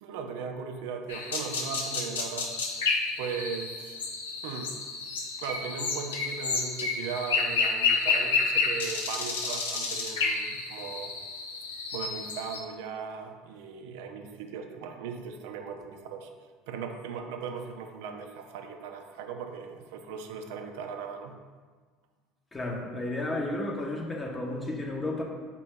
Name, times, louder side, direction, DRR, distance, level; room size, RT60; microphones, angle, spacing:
voice 1, 0.0-2.5 3.2-4.0 4.4-4.8 5.4-11.1 11.9-16.3 16.7-21.3, right 6 dB, 70° right, 5 dB, 0.4 m, -38 dB
sound 1, 1.1-12.6, left 4 dB, 80° left, 0.5 m, -30 dB
voice 2, 22.5-25.2, left 2 dB, 20° left, 0 dB, 0.8 m, -32 dB
4.4 x 2.7 x 3.5 m, 1.5 s
hypercardioid pair, 65°, 0 cm